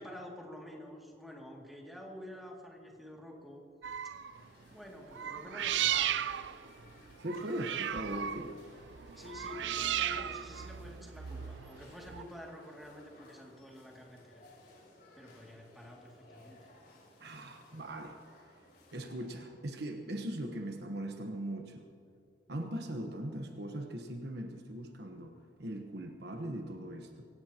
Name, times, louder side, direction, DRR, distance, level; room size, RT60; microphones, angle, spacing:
voice 1, 0.0-3.6 4.7-6.1 9.2-14.4 15.1-16.6, left 1 dB, ahead, -2 dB, 2.5 m, -49 dB
sound 1, 3.8-4.4 5.1-12.2, right 10 dB, 80° right, 0.5 m, -35 dB
sound 2, 4.3-19.5, left 1 dB, 60° left, 4.7 m, -59 dB
voice 2, 7.2-8.5 17.2-18.2 18.9-21.9 22.5-27.2, right 1 dB, 65° right, 4 dB, 1.2 m, -40 dB
23.5 x 18.0 x 3.0 m, 2.4 s
head